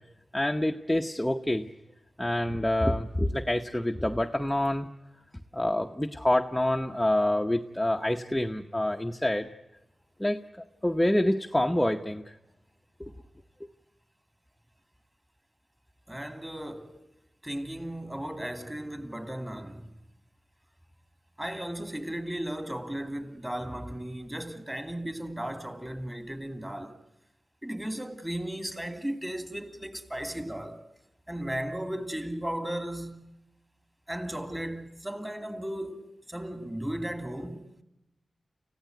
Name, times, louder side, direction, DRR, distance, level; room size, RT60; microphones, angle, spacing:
voice 1, 0.3-1.7 2.2-4.9 5.5-9.5 10.2-10.4 10.8-12.3 13.0-13.1, left 1 dB, 10° left, 0.9 m, -27 dB
voice 2, 16.1-17.0 17.4-19.9 21.4-27.0 27.6-30.8 31.3-33.4 34.1-37.7, right 1 dB, 10° right, 2.8 m, -36 dB
29.5 x 15.5 x 9.3 m
wide cardioid pair, 80°, 0 cm